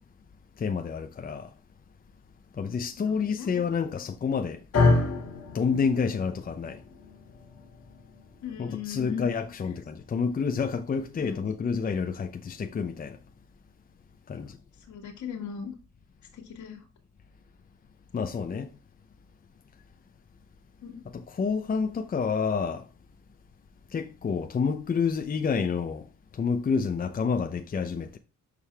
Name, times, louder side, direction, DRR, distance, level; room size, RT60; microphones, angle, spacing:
voice 1, 0.6-1.5 2.5-4.6 5.5-6.8 8.6-13.2 14.3-14.6 18.1-18.7 21.1-22.9 23.9-26.0 26.3-28.2, left 5 dB, 30° left, 0.7 m, -29 dB
voice 2, 3.0-3.5 8.4-9.3 11.1-11.4 14.3-14.6 14.9-15.8 16.3-16.8 20.8-21.0, left 8 dB, 70° left, 2.1 m, -38 dB
sound 1, 4.7-13.0, left 3 dB, 55° left, 1.9 m, -31 dB
6.5 x 5.4 x 3.4 m
cardioid pair, 90°, 30 cm